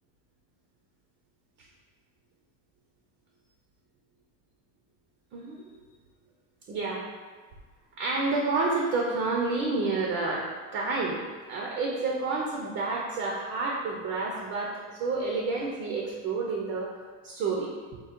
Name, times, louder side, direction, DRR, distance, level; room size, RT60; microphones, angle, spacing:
voice 1, 5.3-5.8 6.7-7.0 8.0-10.4 10.7-16.9 17.2-18.0, right 3 dB, 30° right, -2 dB, 0.4 m, -29 dB
3.7 x 2.5 x 4.3 m, 1.4 s
cardioid pair, 170°, 36 cm